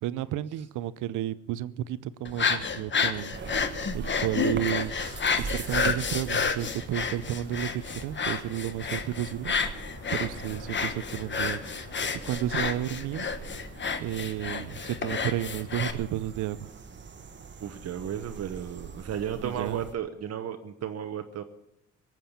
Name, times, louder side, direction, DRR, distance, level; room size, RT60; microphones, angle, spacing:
voice 1, 0.0-3.7 3.9-9.5 10.1-11.6 12.2-13.3 14.0-16.7 19.4-19.8, right 13 dB, 90° right, 0.7 m, -32 dB
sound 1, 2.2-15.9, left 5 dB, 40° left, 1.3 m, -30 dB
sound 2, 3.3-19.9, right 5 dB, 40° right, 1.3 m, -42 dB
voice 2, 17.6-21.4, right 9 dB, 55° right, 1.0 m, -34 dB
17.5 x 7.6 x 8.5 m
cardioid pair, 90°, 30 cm